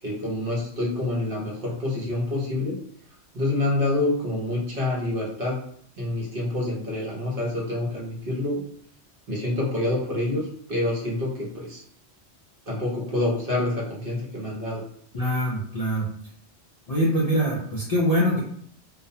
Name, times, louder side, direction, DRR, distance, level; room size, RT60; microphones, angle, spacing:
voice 1, 0.0-2.8 3.3-5.6 6.0-8.6 9.3-11.8 12.7-14.8, left 2 dB, 55° right, -4 dB, 0.9 m, -27 dB
voice 2, 15.1-16.1 16.9-18.4, equal, 50° left, -6 dB, 0.5 m, -23 dB
2.4 x 2.1 x 2.7 m, 0.64 s
omnidirectional pair, 1.2 m